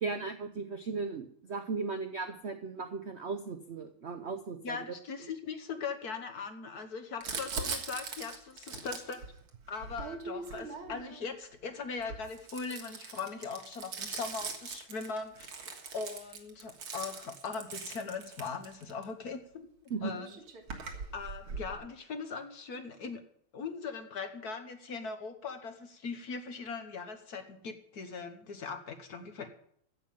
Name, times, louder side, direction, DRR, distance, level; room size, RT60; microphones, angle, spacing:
voice 1, 0.0-4.8 19.9-20.1, right 4 dB, 70° right, 8 dB, 0.6 m, -36 dB
voice 2, 4.6-9.2 9.7-15.5 15.9-19.7 20.0-20.4 21.1-23.2 23.5-29.5, left 5 dB, 50° left, 7 dB, 1.6 m, -40 dB
Crumpling crinkling, 7.2-11.2 11.9-19.0 19.9-20.0 20.1-21.7, right 5 dB, 85° right, 2.5 m, -41 dB
15.0 x 5.7 x 8.8 m, 0.65 s
omnidirectional pair, 2.3 m